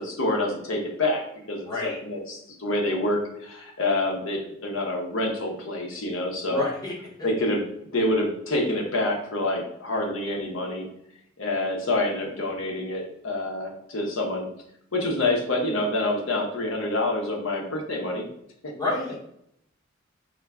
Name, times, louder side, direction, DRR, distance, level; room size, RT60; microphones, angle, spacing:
voice 1, 0.0-6.6 7.2-7.6 7.9-10.9 11.4-14.5 14.9-18.2 18.6-18.7, left 1 dB, 70° left, 1 dB, 1.0 m, -27 dB
voice 2, 1.6-2.0 6.5-7.3 18.8-19.3, left 2 dB, 20° left, -4 dB, 1.1 m, -30 dB
5.3 x 2.2 x 3.5 m, 0.73 s
head